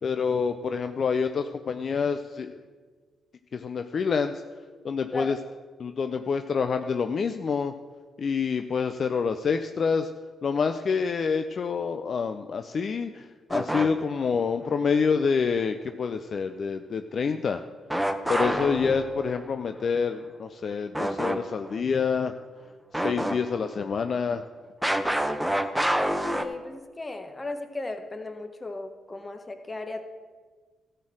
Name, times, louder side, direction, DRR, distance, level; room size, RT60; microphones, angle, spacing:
voice 1, 0.0-2.5 3.5-4.3 4.8-5.4 5.8-7.7 8.2-10.1 10.4-17.6 18.3-22.3 22.9-24.4, left 5 dB, 55° left, 8 dB, 0.5 m, -27 dB
sound 1, 13.5-14.3 17.9-19.4 20.9-21.4 21.7-21.8 22.9-23.7 24.8-26.5, right 1 dB, 5° right, 0.9 m, -27 dB
voice 2, 26.3-30.0, left 2 dB, 30° left, 6 dB, 1.3 m, -36 dB
13.5 x 4.5 x 7.7 m, 1.5 s
hypercardioid pair, 45°, 0 cm